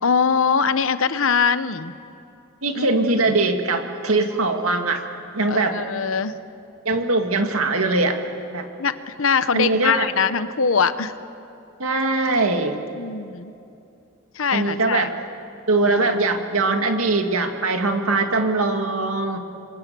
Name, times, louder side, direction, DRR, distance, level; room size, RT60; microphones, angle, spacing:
voice 1, 0.0-1.9 2.7-3.4 5.5-6.4 8.8-11.1 13.0-13.5 14.4-15.1, left 6 dB, 75° left, 13 dB, 0.9 m, -22 dB
voice 2, 2.6-5.0 5.3-5.8 6.9-8.2 8.5-8.7 9.5-10.1 11.8-12.8 14.5-15.1 15.7-19.4, right 3 dB, 90° right, 5 dB, 2.2 m, -21 dB
28.0 x 24.0 x 6.9 m, 2.7 s
head